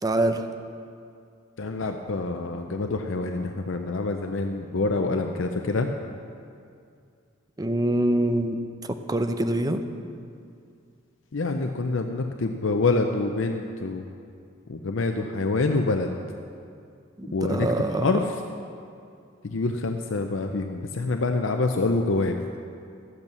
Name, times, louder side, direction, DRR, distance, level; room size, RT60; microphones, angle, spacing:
voice 1, 0.0-0.5 7.6-8.6 8.9-9.8 17.2-18.1, right 1 dB, 20° right, 7 dB, 0.6 m, -25 dB
voice 2, 1.6-5.9 11.3-14.0 14.7-16.1 17.3-18.3 19.4-22.4, left 3 dB, 75° left, 4 dB, 0.6 m, -26 dB
12.5 x 8.2 x 7.0 m, 2.4 s
head